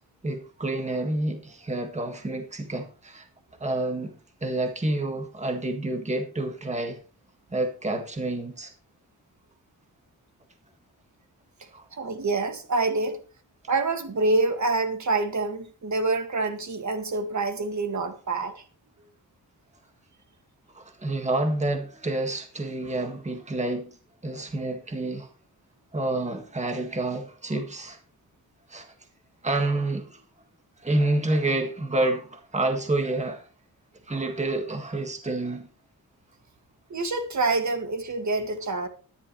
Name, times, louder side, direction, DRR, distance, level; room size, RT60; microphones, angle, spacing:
voice 1, 0.2-3.3 3.6-4.1 4.4-7.0 7.5-8.7 11.7-11.8 20.7-24.0 24.2-25.3 25.9-28.0 28.7-28.9 29.4-30.2 30.8-33.5 34.1-35.7, right 2 dB, 20° right, 1.7 m, -28 dB
voice 2, 11.9-13.2 13.7-18.6 36.9-38.9, right 3 dB, 50° right, 1.9 m, -26 dB
13.5 x 11.0 x 3.1 m
wide cardioid pair, 170°, 38 cm